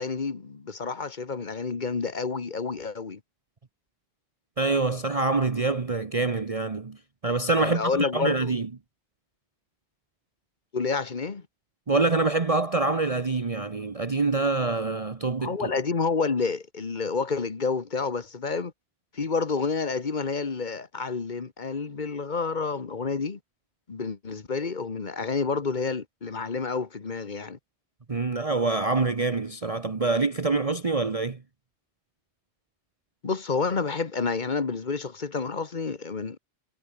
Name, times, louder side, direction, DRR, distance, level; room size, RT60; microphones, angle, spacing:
voice 1, 0.0-3.2 7.6-8.5 10.7-11.4 15.4-18.7 19.1-23.4 23.9-27.6 33.2-36.4, left 4 dB, 40° left, 1.4 m, -29 dB
voice 2, 4.6-7.0 7.2-8.7 11.9-15.7 28.1-31.4, right 3 dB, 30° right, 1.1 m, -25 dB
omnidirectional pair, 1.2 m